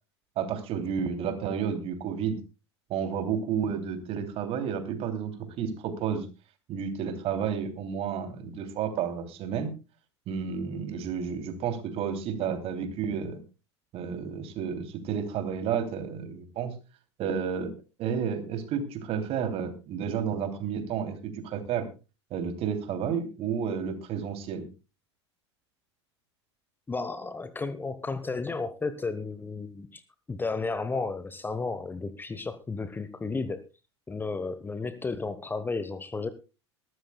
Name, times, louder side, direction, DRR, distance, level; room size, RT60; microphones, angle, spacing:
voice 1, 0.4-2.4 2.9-6.3 6.7-9.7 10.3-13.4 13.9-16.7 17.2-17.7 18.0-21.9 22.3-24.7, right 7 dB, 40° right, 8 dB, 3.1 m, -31 dB
voice 2, 26.9-30.0 30.3-33.6 34.1-36.3, left 3 dB, 15° left, 13 dB, 1.1 m, -33 dB
22.0 x 13.0 x 2.3 m, 0.30 s
figure-of-eight pair, 80°, 15 cm